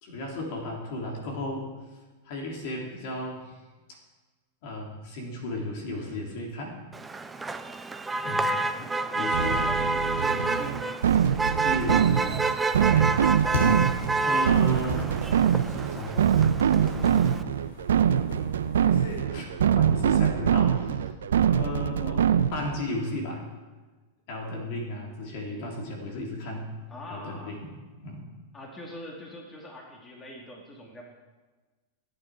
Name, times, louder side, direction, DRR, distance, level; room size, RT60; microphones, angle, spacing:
voice 1, 0.0-1.7 2.2-3.4 4.6-6.8 8.2-8.6 9.1-9.7 11.6-12.4 12.9-13.2 14.2-15.1 15.8-16.3 16.6-17.4 19.1-21.0 21.5-23.4 24.3-26.8 27.1-27.7 28.0-28.2, left 1 dB, 60° left, 0 dB, 3.4 m, -35 dB
Motor vehicle (road), 6.9-17.4, right 3 dB, 15° right, 0.6 m, -29 dB
voice 2, 8.8-10.9 26.9-27.6 28.5-31.0, equal, 20° left, -1 dB, 2.5 m, -42 dB
sound 1, 9.3-22.8, right 8 dB, 80° right, 0.6 m, -24 dB
sound 2, 13.3-19.2, left 2 dB, 75° left, 4.0 m, -38 dB
14.5 x 8.7 x 4.9 m, 1.3 s
hypercardioid pair, 100°, 0 cm